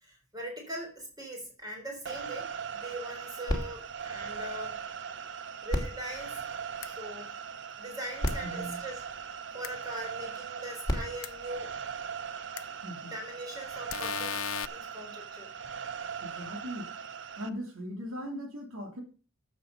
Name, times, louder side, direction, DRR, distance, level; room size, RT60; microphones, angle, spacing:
voice 1, 0.0-4.9 5.6-6.4 6.8-7.3 7.8-9.0 9.5-11.8 13.0-14.4 14.7-15.5, right 1 dB, 20° right, 1 dB, 3.8 m, -41 dB
sound 1, 2.1-17.5, right 7 dB, 60° right, 0.7 m, -40 dB
sound 2, 3.5-5.1 5.6-7.3 7.9-8.0 8.2-9.8 10.6-12.4 13.1-13.2, equal, 20° left, 2.7 m, -37 dB
sound 3, 6.8-6.9 8.3-8.4 9.6-9.7 11.2-11.3 12.6-12.7 13.9-14.7, left 10 dB, 80° left, 0.5 m, -35 dB
voice 2, 8.4-8.8 12.8-13.2 16.2-17.0 17.4-19.0, equal, 90° right, 3 dB, 2.8 m, -39 dB
13.0 x 7.5 x 5.3 m, 0.36 s
head